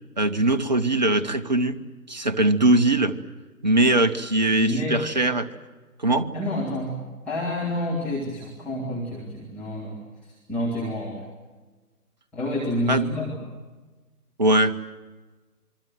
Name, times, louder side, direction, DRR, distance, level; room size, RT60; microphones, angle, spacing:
voice 1, 0.2-1.8 2.1-3.2 3.6-5.5 6.0-6.3 12.9-13.0 14.4-14.8, right 2 dB, 30° right, 10 dB, 0.8 m, -21 dB
voice 2, 4.6-5.1 6.3-11.3 12.3-13.4, left 1 dB, 5° left, -9 dB, 2.0 m, -29 dB
27.0 x 23.5 x 7.6 m, 1.3 s
figure-of-eight pair, 145°, 47 cm